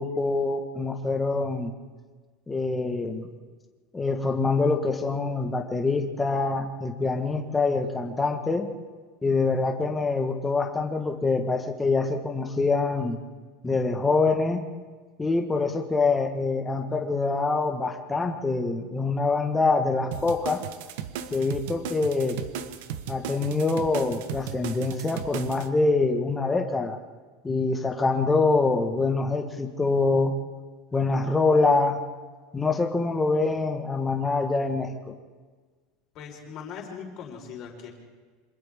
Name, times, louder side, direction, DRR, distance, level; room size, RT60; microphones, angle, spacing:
voice 1, 0.0-1.7 2.5-3.3 3.9-8.7 9.2-13.2 13.6-14.6 15.2-20.6 21.3-22.4 23.1-27.0 27.4-30.4 30.9-32.0 32.5-35.1, left 3 dB, 10° left, 4 dB, 1.5 m, -25 dB
sound 1, 20.1-25.7, right 8 dB, 75° right, 1.2 m, -36 dB
voice 2, 36.1-37.9, left 6 dB, 40° left, 0 dB, 4.6 m, -40 dB
28.0 x 26.0 x 3.7 m, 1.5 s
supercardioid pair, 165°, 0 cm